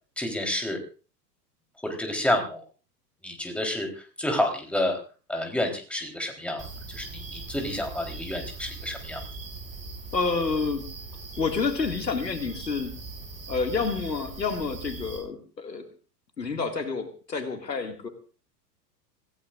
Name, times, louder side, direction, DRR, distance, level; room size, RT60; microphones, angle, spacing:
voice 1, 0.2-0.8 1.8-2.6 3.2-5.0 5.3-6.6 6.9-9.2, left 1 dB, ahead, 2 dB, 3.7 m, -29 dB
sound 1, 6.6-15.2, right 3 dB, 15° right, 6.0 m, -40 dB
voice 2, 10.1-10.8 11.4-12.9 13.5-15.9 16.4-18.1, left 4 dB, 80° left, 6 dB, 2.3 m, -29 dB
26.0 x 16.0 x 2.5 m, 0.37 s
figure-of-eight pair, 90°, 50 cm